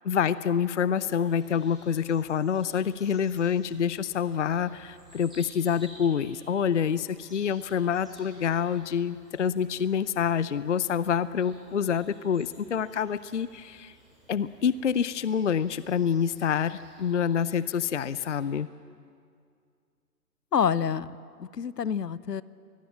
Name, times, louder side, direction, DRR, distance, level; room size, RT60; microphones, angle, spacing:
voice 1, 0.0-13.9 14.3-18.7, left 7 dB, 50° left, 17 dB, 0.6 m, -27 dB
sound 1, 1.1-18.5, right 1 dB, ahead, 5.5 m, -55 dB
voice 2, 20.5-21.1 21.4-22.4, left 7 dB, 75° left, 19 dB, 0.9 m, -27 dB
23.5 x 20.0 x 8.7 m, 2.3 s
hypercardioid pair, 155°, 49 cm